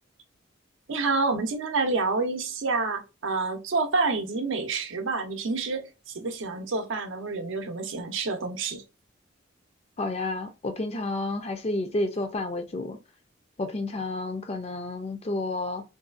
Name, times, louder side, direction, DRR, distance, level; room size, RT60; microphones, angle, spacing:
voice 1, 0.9-5.9 6.1-8.8, right 3 dB, 80° right, 0.6 m, -28 dB
voice 2, 10.0-13.0 13.6-15.8, left 2 dB, 30° left, 0.4 m, -30 dB
2.6 x 2.3 x 2.4 m
head